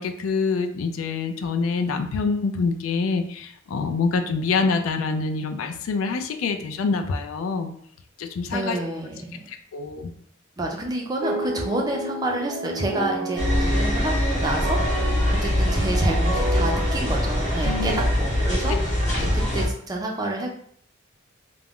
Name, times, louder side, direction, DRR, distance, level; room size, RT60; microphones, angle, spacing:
voice 1, 0.0-7.7 8.2-8.8 9.5-10.1 17.6-18.1 18.7-18.8 19.2-19.3, left 4 dB, 85° left, 6 dB, 0.3 m, -26 dB
voice 2, 8.5-9.4 10.6-15.2 15.4-17.9 18.2-20.6, right 1 dB, 20° right, 0 dB, 0.4 m, -29 dB
sound 1, 11.2-18.1, right 2 dB, 65° right, 0.6 m, -31 dB
sound 2, 13.4-19.7, left 1 dB, 35° left, 0.7 m, -23 dB
2.3 x 2.1 x 3.5 m, 0.63 s
head